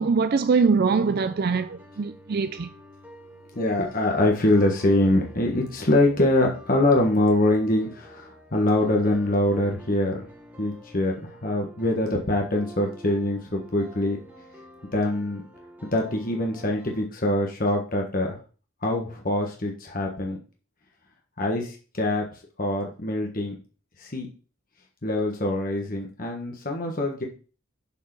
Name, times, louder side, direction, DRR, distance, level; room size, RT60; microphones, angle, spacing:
voice 1, 0.0-2.7, right 5 dB, 50° right, 0.4 m, -23 dB
sound 1, 1.0-17.0, equal, 10° right, 1.8 m, -48 dB
voice 2, 3.5-10.3 10.6-14.2 14.9-15.4 15.8-18.4 18.8-20.4 21.4-23.6 24.0-24.3 25.0-27.2, left 1 dB, 45° left, 1.3 m, -24 dB
7.2 x 4.7 x 6.0 m
head